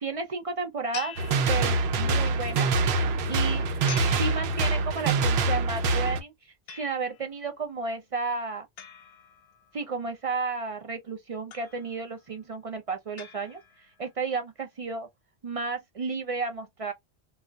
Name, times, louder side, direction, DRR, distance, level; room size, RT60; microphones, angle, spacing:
voice 1, 0.0-1.1 1.5-2.7 3.3-3.7 4.2-6.3 6.7-8.7 9.7-13.6 14.0-15.1 15.4-16.9, right 4 dB, 45° right, 0.4 m, -32 dB
sound 1, 0.9-2.2 3.9-5.2 6.7-7.4 8.8-9.9 11.5-12.2 13.2-14.1, left 8 dB, 70° left, 0.8 m, -44 dB
sound 2, 1.2-6.2, right 3 dB, 75° right, 0.8 m, -25 dB
2.4 x 2.1 x 3.8 m
omnidirectional pair, 1.1 m